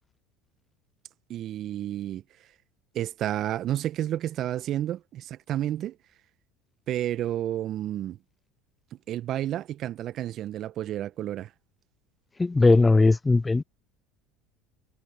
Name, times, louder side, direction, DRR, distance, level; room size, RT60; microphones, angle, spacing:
voice 1, 1.3-2.2 2.9-6.0 6.9-8.2 9.1-11.5, right 12 dB, 50° right, 1.6 m, -30 dB
voice 2, 12.4-13.6, left 3 dB, 15° left, 0.4 m, -19 dB
hypercardioid pair, 70°, 0 cm